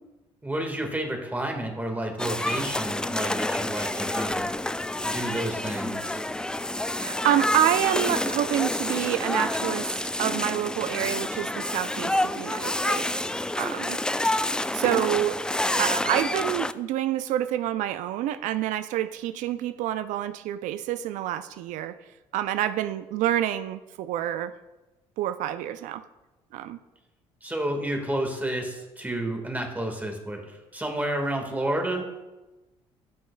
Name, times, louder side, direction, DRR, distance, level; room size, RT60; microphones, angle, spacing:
voice 1, 0.4-4.4 5.0-6.2 27.4-30.4 30.7-32.0, right 1 dB, 10° right, 3 dB, 1.6 m, -30 dB
sound 1, 2.2-16.7, left 1 dB, 5° left, 0.3 m, -28 dB
voice 2, 7.0-13.1 13.6-14.0 14.7-15.4 15.8-22.0 22.3-24.5 25.2-26.0 26.5-26.8, right 12 dB, 70° right, 12 dB, 0.4 m, -27 dB
12.5 x 6.2 x 2.2 m, 1.1 s
hypercardioid pair, 65°, 13 cm